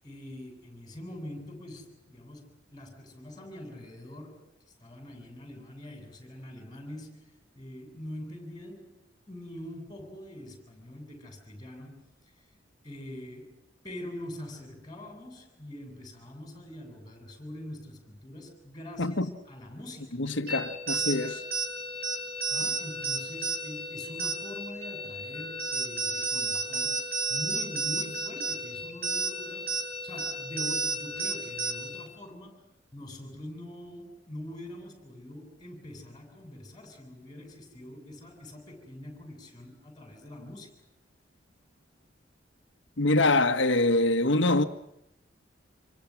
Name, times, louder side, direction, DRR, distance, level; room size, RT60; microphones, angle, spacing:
voice 1, 0.0-4.5 4.8-12.0 12.8-19.2 19.5-20.2 22.5-40.7, left 1 dB, 20° left, 7.6 m, -44 dB
voice 2, 19.0-19.3 20.1-21.4 43.0-44.6, left 2 dB, 75° left, 1.7 m, -24 dB
sound 1, 20.5-32.1, right 3 dB, 55° right, 5.9 m, -32 dB
27.5 x 24.5 x 6.2 m
head